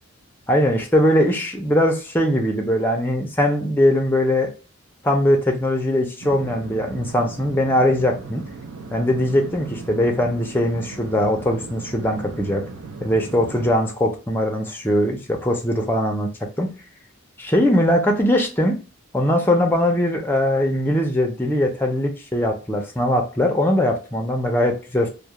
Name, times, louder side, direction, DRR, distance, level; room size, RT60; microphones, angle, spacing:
voice 1, 0.5-4.5 5.0-8.4 8.9-12.6 13.0-16.3 16.6-16.7 17.4-18.8 19.1-25.1, left 1 dB, 10° left, 0.4 m, -20 dB
sound 1, 6.2-13.8, right 4 dB, 85° right, 0.5 m, -37 dB
2.3 x 2.0 x 2.8 m
head